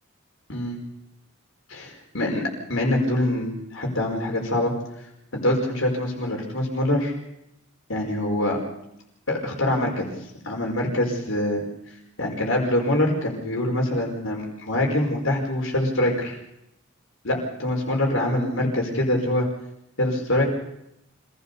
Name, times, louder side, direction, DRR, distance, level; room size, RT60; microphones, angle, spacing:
voice 1, 1.7-4.7 5.3-7.1 7.9-8.6 9.3-10.1 10.4-11.6 12.2-16.4 17.2-19.5 20.0-20.4, left 1 dB, 70° left, 0 dB, 5.1 m, -24 dB
26.5 x 16.5 x 6.8 m, 0.82 s
head